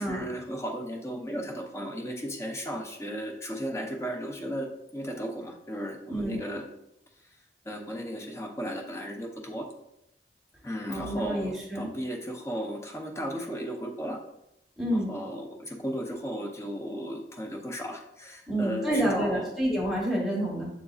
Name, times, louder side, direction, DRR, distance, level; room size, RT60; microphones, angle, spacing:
voice 1, 0.0-4.7 4.9-6.7 7.7-9.7 10.6-14.2 14.9-19.7, equal, 15° left, 1 dB, 0.5 m, -35 dB
voice 2, 10.9-11.9 14.8-15.1 18.5-20.7, right 1 dB, ahead, -5 dB, 1.1 m, -28 dB
6.9 x 2.6 x 2.4 m, 0.84 s
head